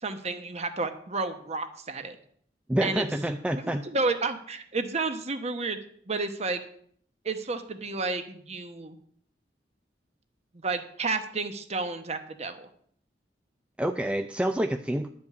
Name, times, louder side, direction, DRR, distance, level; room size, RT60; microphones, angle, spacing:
voice 1, 0.0-2.2 2.8-3.0 3.6-5.8 6.1-6.6 7.2-9.0 10.6-12.7, right 3 dB, 35° right, 8 dB, 1.0 m, -31 dB
voice 2, 2.7-3.8 13.8-15.1, right 1 dB, 5° right, 6 dB, 0.4 m, -27 dB
11.0 x 5.3 x 8.1 m, 0.63 s
head